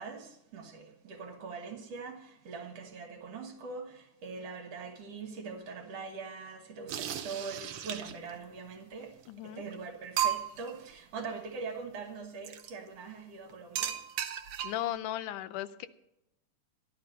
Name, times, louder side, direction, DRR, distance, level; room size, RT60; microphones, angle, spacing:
voice 1, 0.0-14.0, right 4 dB, 60° right, 2.2 m, -42 dB
sound 1, 6.9-8.3 9.3-9.4 9.7-9.8 10.2-10.7 12.4-12.7 13.7-14.9, right 10 dB, 75° right, 1.3 m, -34 dB
voice 2, 9.3-9.6 14.6-15.9, left 13 dB, 85° left, 2.2 m, -36 dB
12.5 x 12.0 x 5.2 m
omnidirectional pair, 3.6 m